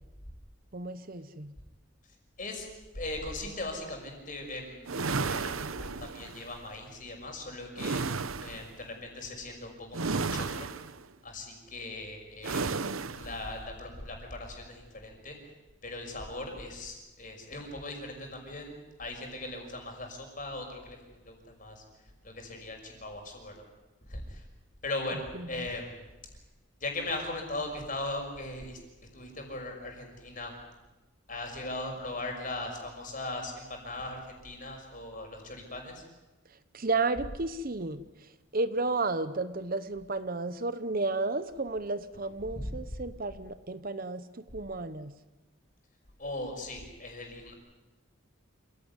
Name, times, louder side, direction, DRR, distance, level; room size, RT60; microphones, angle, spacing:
voice 1, 0.7-1.5 25.1-25.7 36.7-45.1, right 3 dB, 45° right, 13 dB, 0.9 m, -33 dB
voice 2, 2.9-10.7 11.2-12.7 13.1-15.4 15.8-21.8 22.2-23.6 24.1-24.4 24.8-26.0 26.8-28.8 29.1-30.5 31.3-36.0 42.6-42.7 46.2-47.5, left 2 dB, 40° left, 2 dB, 5.9 m, -39 dB
sound 1, 4.9-6.5 7.8-8.7 9.9-11.0 12.4-13.4, right 4 dB, 80° right, 1.0 m, -33 dB
28.0 x 16.5 x 9.8 m, 1.1 s
head